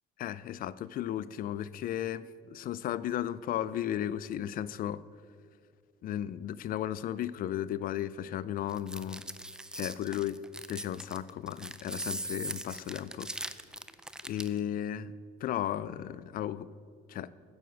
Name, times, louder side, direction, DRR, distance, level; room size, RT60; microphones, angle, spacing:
voice 1, 0.2-2.2 2.5-5.0 6.0-9.2 9.7-10.4 10.7-13.3 14.2-15.1 15.4-16.7 17.1-17.3, left 11 dB, 55° left, 18 dB, 0.4 m, -34 dB
sound 1, 8.7-14.6, right 1 dB, 5° right, 0.4 m, -40 dB
10.0 x 7.9 x 6.2 m, 2.1 s
cardioid pair, 110°, 17 cm